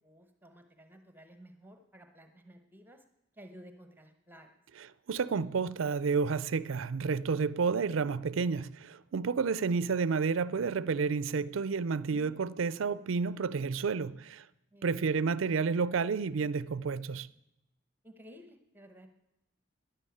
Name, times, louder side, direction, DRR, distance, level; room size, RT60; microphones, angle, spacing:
voice 1, 0.0-3.0 3.3-4.6 14.7-15.2 18.0-19.1, equal, 10° right, 1.0 m, -54 dB
voice 2, 4.8-14.5 14.8-17.3, right 5 dB, 75° right, 0.4 m, -30 dB
12.0 x 10.5 x 8.5 m
head